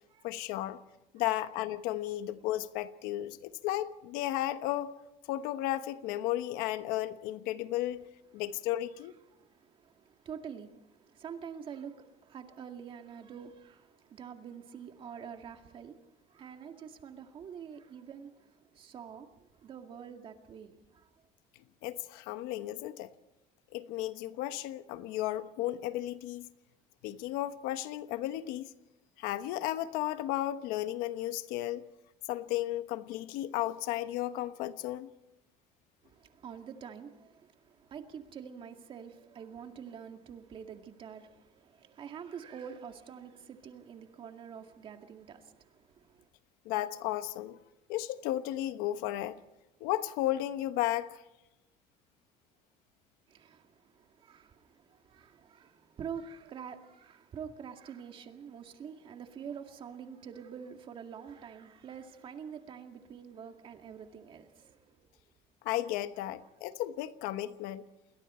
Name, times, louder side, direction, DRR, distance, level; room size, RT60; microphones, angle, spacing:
voice 1, 0.2-0.8 1.1-4.9 5.3-8.0 8.3-9.1 21.8-23.1 23.7-26.5 27.0-28.7 29.2-31.9 32.3-35.1 46.6-47.6 47.9-49.4 49.8-51.2 65.6-67.8, left 14 dB, 85° left, 1.2 m, -34 dB
voice 2, 9.3-21.1 36.0-46.3 53.3-65.1, right 7 dB, 35° right, 2.1 m, -46 dB
29.5 x 21.5 x 4.4 m
cardioid pair, 155°, 15 cm